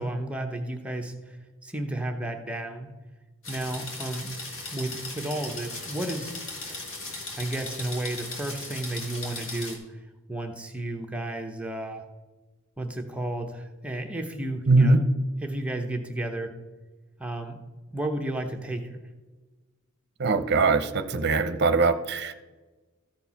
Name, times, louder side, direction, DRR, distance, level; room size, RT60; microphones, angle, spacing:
voice 1, 0.0-3.0 3.5-4.3 4.7-6.3 6.7-6.8 7.3-10.0 10.3-12.0 12.8-15.0 15.4-16.5 17.2-17.6 17.9-19.0, right 1 dB, 5° right, 3 dB, 0.8 m, -33 dB
sound 1, 3.4-9.8, left 2 dB, 65° left, 2.0 m, -37 dB
voice 2, 14.7-15.0 20.2-22.3, right 3 dB, 55° right, 12 dB, 0.7 m, -21 dB
14.0 x 4.6 x 5.7 m, 1.2 s
head